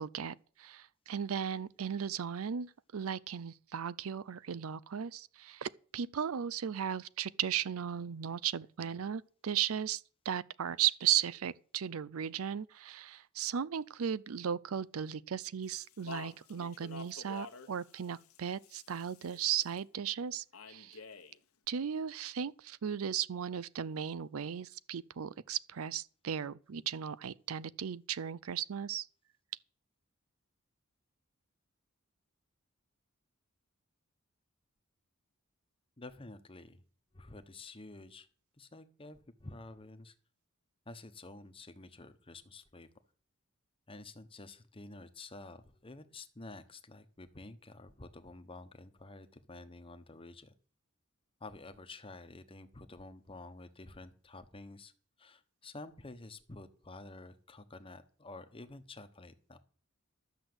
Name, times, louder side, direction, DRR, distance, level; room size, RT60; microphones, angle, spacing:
voice 1, 0.0-21.0 21.7-29.1, right 9 dB, 75° right, 0.5 m, -36 dB
Speech, 15.6-19.8 20.5-21.4, left 4 dB, 85° left, 1.2 m, -50 dB
voice 2, 36.0-36.8 37.1-38.3 38.6-40.1 40.9-42.9 43.9-50.5 51.4-54.9 55.2-59.6, left 2 dB, 25° left, 1.1 m, -50 dB
12.5 x 6.3 x 7.9 m
head